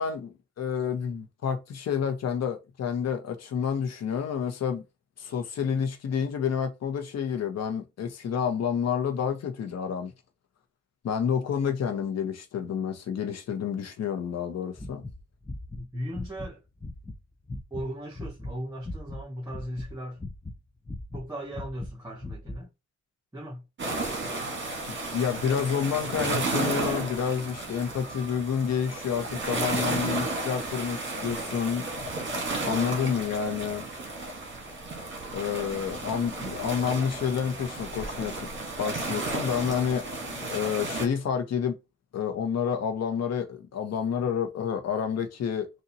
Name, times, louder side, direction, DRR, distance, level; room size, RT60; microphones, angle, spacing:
voice 1, 0.0-4.8 5.2-10.1 11.0-15.0 24.9-31.9 32.6-33.9 35.3-38.5 38.8-41.8 42.1-45.7, left 7 dB, 60° left, 1.1 m, -29 dB
sound 1, 14.7-17.2 17.5-17.9 18.1-19.2 19.5-20.6 20.8-22.6, left 2 dB, 10° left, 0.4 m, -38 dB
voice 2, 15.7-16.6 17.7-20.2 21.1-22.7 23.3-23.6, equal, 10° right, 1.6 m, -37 dB
sound 2, 23.8-41.0, right 2 dB, 40° right, 1.4 m, -33 dB
4.0 x 2.6 x 2.8 m
cardioid pair, 90°, 30 cm